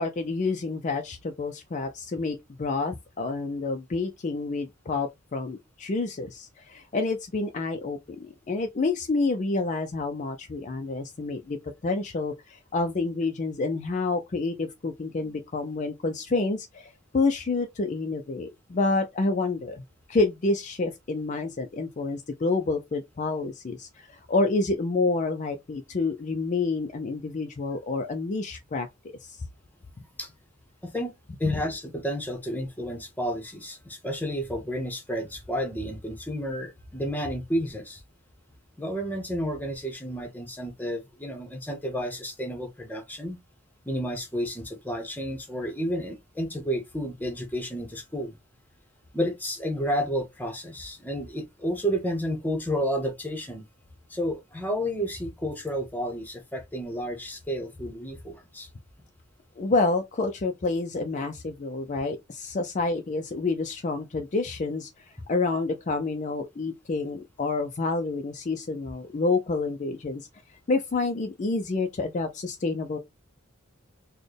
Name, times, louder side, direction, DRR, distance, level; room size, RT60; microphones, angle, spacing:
voice 1, 0.0-11.6 11.8-19.8 20.1-28.9 29.2-29.4 31.4-31.6 59.6-70.3 70.7-73.0, left 3 dB, 35° left, 0.4 m, -28 dB
voice 2, 30.8-31.1 31.4-38.0 38.8-43.4 43.8-48.4 49.1-53.6 54.1-58.7, equal, 10° left, 0.9 m, -31 dB
4.1 x 2.2 x 3.2 m
head